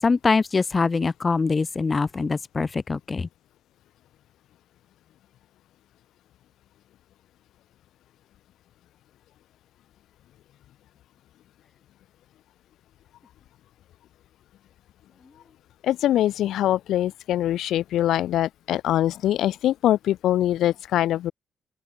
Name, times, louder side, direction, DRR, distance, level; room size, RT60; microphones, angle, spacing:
voice 1, 0.0-3.3, left 4 dB, 30° left, 6.9 m, -23 dB
voice 2, 15.8-21.3, left 12 dB, 80° left, 5.4 m, -23 dB
open air
cardioid pair, 90°, 0 cm